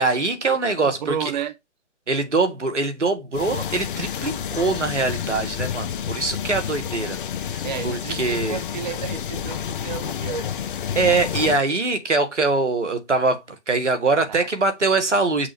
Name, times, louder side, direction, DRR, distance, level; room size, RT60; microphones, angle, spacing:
voice 1, 0.0-1.3 2.1-7.2 7.5-8.6 11.0-15.5, right 3 dB, 80° right, 1.9 m, -23 dB
voice 2, 0.8-1.5 7.6-10.5 14.0-14.5, right 8 dB, 40° right, 0.9 m, -32 dB
sound 1, 3.3-11.6, left 8 dB, 45° left, 0.6 m, -29 dB
6.1 x 5.7 x 3.3 m
figure-of-eight pair, 135°, 35 cm